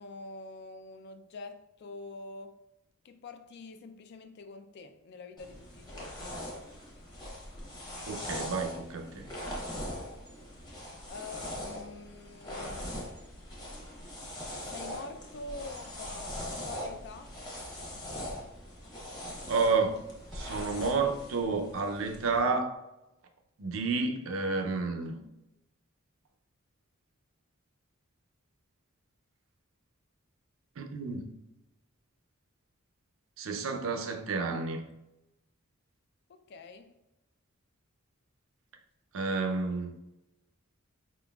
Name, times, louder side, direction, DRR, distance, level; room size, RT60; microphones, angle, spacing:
voice 1, 0.0-2.6 3.0-6.4 11.1-13.1 14.7-17.3 36.3-36.9, left 3 dB, 55° left, 0.4 m, -46 dB
sound 1, 5.4-22.4, left 1 dB, 20° left, 0.9 m, -41 dB
voice 2, 8.1-9.3 19.5-20.0 20.3-22.8 23.6-25.2 30.8-31.3 33.4-34.9 39.1-40.0, right 4 dB, 70° right, 0.5 m, -30 dB
4.6 x 3.8 x 2.3 m
head